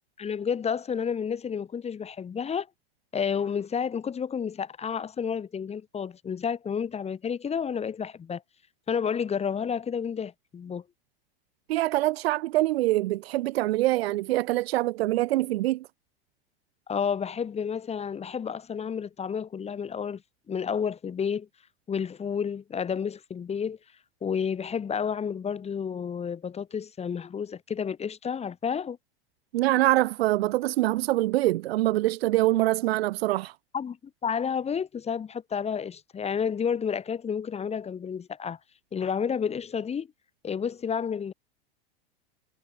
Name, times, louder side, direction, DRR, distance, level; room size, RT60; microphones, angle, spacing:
voice 1, 0.2-2.7 3.1-8.4 8.9-10.8 16.9-20.2 20.5-21.5 21.9-23.8 24.2-29.0 33.7-34.0 34.2-38.6 38.9-40.1 40.4-41.3, left 7 dB, 20° left, 1.3 m, -30 dB
voice 2, 11.7-15.9 29.5-33.5, right 17 dB, 75° right, 2.6 m, -24 dB
hypercardioid pair, 110°, 31 cm